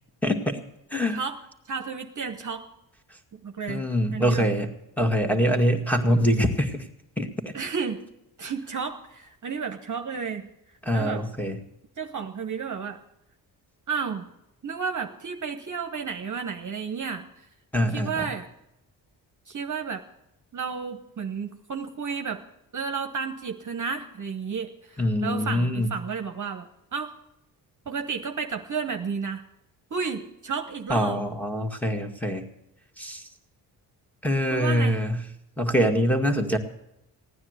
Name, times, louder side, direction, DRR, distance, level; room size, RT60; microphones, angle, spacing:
voice 1, 0.2-0.6 0.9-1.2 3.7-4.7 5.0-6.8 7.2-7.5 10.8-11.6 17.7-18.3 25.0-25.9 30.9-32.5 33.0-33.2 34.2-35.2 35.6-36.6, equal, 5° left, 1 dB, 2.1 m, -24 dB
voice 2, 1.7-2.7 3.3-3.9 4.1-4.5 7.5-8.0 8.4-10.5 10.9-11.2 12.0-13.0 13.9-14.3 14.6-17.3 17.9-18.5 19.5-20.0 20.5-22.4 22.7-27.1 27.9-29.4 29.9-31.2 34.5-35.0, right 5 dB, 40° right, 6 dB, 1.2 m, -32 dB
16.0 x 9.7 x 8.1 m, 0.84 s
supercardioid pair, 55°, 46 cm